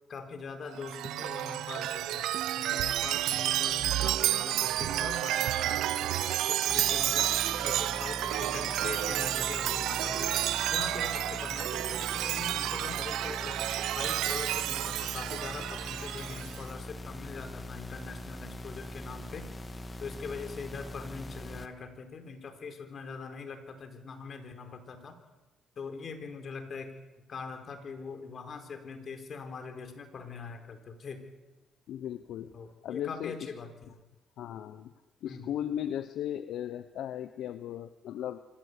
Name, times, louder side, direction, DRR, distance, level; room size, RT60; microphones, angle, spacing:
voice 1, 0.1-2.3 2.6-7.3 7.6-10.3 10.7-13.6 13.9-19.5 20.0-25.1 25.8-26.9 27.3-31.3 32.5-34.0 35.2-35.5, left 5 dB, 50° left, 6 dB, 3.9 m, -42 dB
Chime, 0.7-16.6, right 13 dB, 80° right, 0.7 m, -30 dB
sound 1, 6.7-21.7, left 1 dB, 25° left, 1.8 m, -42 dB
voice 2, 31.9-32.5 32.8-33.5 34.4-34.9 35.2-38.4, left 10 dB, 75° left, 11 dB, 0.9 m, -36 dB
25.5 x 14.5 x 8.1 m, 1.1 s
cardioid pair, 85°, 0 cm